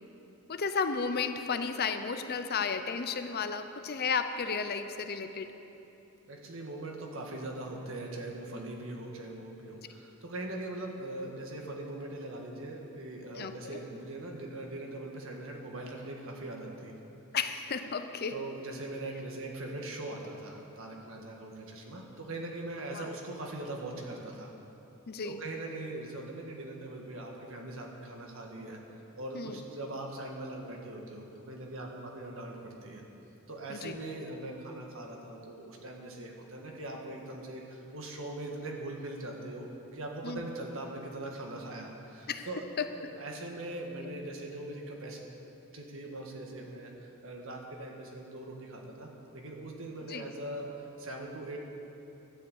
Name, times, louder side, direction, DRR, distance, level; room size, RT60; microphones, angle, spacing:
voice 1, 0.5-5.5 13.3-13.5 17.3-18.4 22.9-23.1 25.1-25.4 29.3-29.6 33.7-34.0 40.2-40.4 42.3-42.5 42.8-42.9 44.0-44.1 50.1-50.3, left 5 dB, 45° left, 9 dB, 0.6 m, -33 dB
voice 2, 6.3-17.0 18.3-24.5 25.2-28.8 29.2-33.0 33.5-39.7 39.9-42.6 43.0-45.2 45.7-51.6, right 2 dB, 65° right, 0 dB, 1.7 m, -41 dB
12.5 x 7.9 x 8.2 m, 3.0 s
head